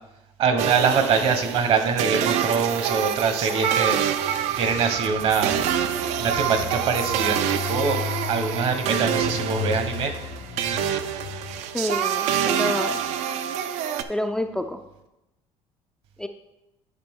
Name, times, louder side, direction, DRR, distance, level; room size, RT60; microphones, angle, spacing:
voice 1, 0.4-4.0 4.6-5.6 6.2-7.4 7.6-8.0 8.3-10.1, right 5 dB, 55° right, 7 dB, 1.1 m, -23 dB
sound 1, 0.6-14.0, right 9 dB, 70° right, 0.5 m, -26 dB
Engine, 3.9-11.9, left 9 dB, 65° left, 0.9 m, -35 dB
voice 2, 11.7-13.0 14.1-14.8 16.2-16.3, left 1 dB, 5° left, 6 dB, 0.3 m, -28 dB
10.5 x 5.1 x 3.6 m, 0.94 s
cardioid pair, 135°, 12 cm